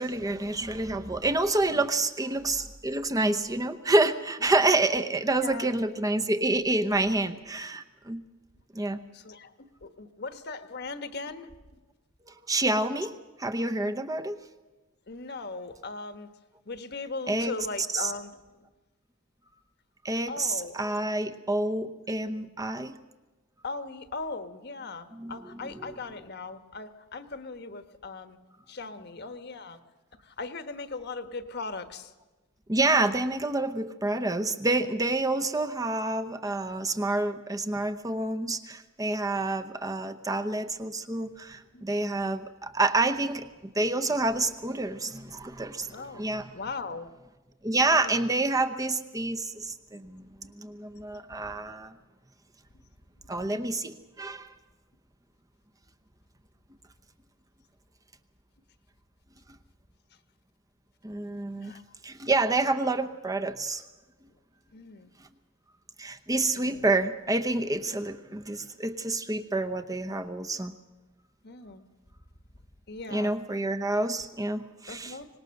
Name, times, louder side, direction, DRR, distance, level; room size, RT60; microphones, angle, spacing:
voice 1, 0.0-8.2 8.7-9.0 12.3-14.4 17.3-18.1 20.0-22.9 25.1-26.2 32.7-46.5 47.6-51.9 53.3-54.5 61.0-61.7 62.0-63.8 66.0-70.7 73.1-75.2, right 2 dB, 15° right, 7 dB, 0.8 m, -28 dB
voice 2, 5.3-5.7 6.9-7.2 9.1-11.5 15.1-16.3 16.6-18.3 20.3-20.7 23.6-28.4 28.7-29.8 30.2-32.1 41.7-41.9 45.9-46.3 46.5-47.1 47.9-48.1 50.1-50.5 51.4-51.6 52.7-52.8 61.6-61.8 64.7-65.1 66.5-66.9 71.4-71.8 72.9-73.3 74.9-75.3, left 3 dB, 50° left, 9 dB, 1.3 m, -39 dB
25.0 x 19.5 x 6.5 m, 1.2 s
head